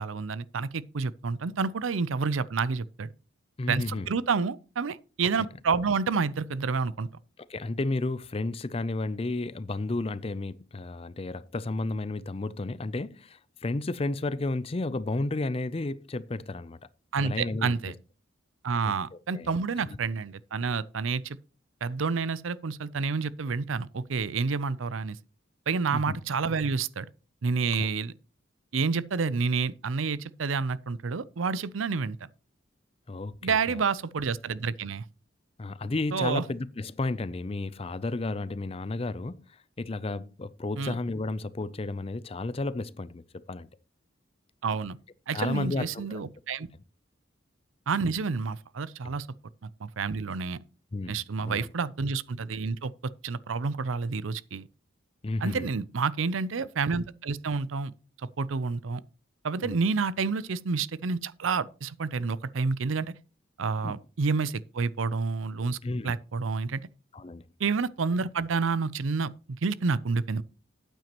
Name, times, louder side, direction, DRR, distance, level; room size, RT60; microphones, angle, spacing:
voice 1, 0.0-3.1 3.7-7.1 17.1-17.9 18.6-21.4 21.8-25.2 25.7-27.1 27.4-28.1 28.7-32.2 33.4-35.0 36.1-36.4 40.8-41.0 44.6-45.0 45.3-46.7 47.9-49.3 49.6-50.6 51.1-54.7 55.4-57.9 58.4-59.0 59.4-63.1 63.6-65.8 66.0-66.8 67.6-70.4, right 4 dB, 85° right, 0.6 m, -29 dB
voice 2, 3.6-4.1 7.5-16.8 17.2-17.8 18.8-18.9 19.3-19.5 19.8-20.0 25.9-26.2 27.8-27.9 33.1-33.8 35.6-39.4 39.8-43.7 45.3-46.2 49.0-49.2 50.9-51.7 55.2-55.7 59.6-59.7 63.8-63.9 65.8-66.2 67.1-67.4, left 2 dB, 30° left, 0.5 m, -32 dB
12.5 x 9.1 x 3.0 m
head